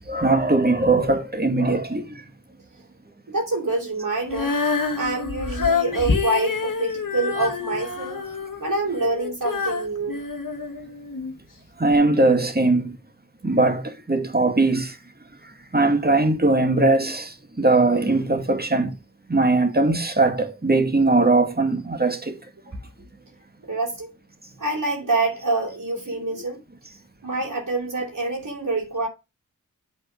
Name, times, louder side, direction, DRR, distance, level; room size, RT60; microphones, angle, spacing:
voice 1, 0.1-2.2 11.8-13.0 13.4-15.0 15.7-19.0 19.3-22.4, right 2 dB, 30° right, 1.9 m, -20 dB
voice 2, 3.3-4.5 5.0-8.2 8.6-10.3 22.7-22.8 23.6-24.1 24.6-26.6 27.2-29.1, right 2 dB, 70° right, 3.3 m, -26 dB
Female singing, 4.3-11.3 11.9-12.0, left 4 dB, 75° left, 1.7 m, -27 dB
8.3 x 4.3 x 5.1 m
wide cardioid pair, 40°, 33 cm